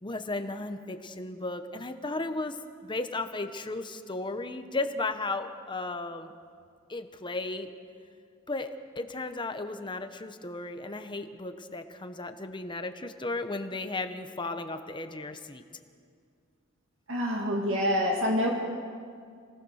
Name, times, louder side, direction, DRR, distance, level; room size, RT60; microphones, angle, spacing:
voice 1, 0.0-2.6 2.8-6.3 6.9-7.7 8.5-15.6, left 2 dB, 25° left, 8 dB, 1.1 m, -35 dB
voice 2, 17.1-18.5, equal, 65° right, 0 dB, 2.3 m, -26 dB
29.0 x 19.0 x 6.5 m, 2.2 s
head